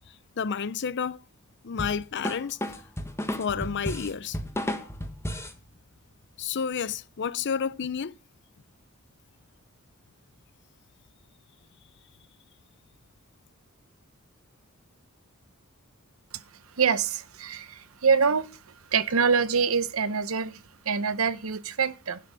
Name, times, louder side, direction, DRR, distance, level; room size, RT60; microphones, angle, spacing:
voice 1, 0.4-1.2 1.6-2.6 3.4-4.4 6.4-8.1, left 6 dB, 55° left, 0.6 m, -30 dB
sound 1, 1.8-5.6, left 1 dB, 10° left, 1.5 m, -33 dB
voice 2, 16.8-18.6 18.9-22.2, right 6 dB, 70° right, 0.9 m, -25 dB
11.5 x 5.9 x 7.5 m
head